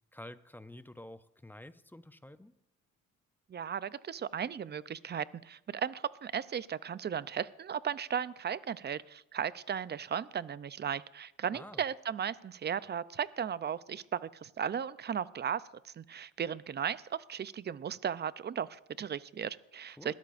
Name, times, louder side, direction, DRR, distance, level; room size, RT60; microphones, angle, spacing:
voice 1, 0.1-2.5 11.5-11.8 20.0-20.1, left 1 dB, 5° left, 12 dB, 0.6 m, -49 dB
voice 2, 3.5-20.1, right 8 dB, 35° right, 17 dB, 0.5 m, -36 dB
21.0 x 13.5 x 2.6 m, 0.86 s
cardioid pair, 90°, 30 cm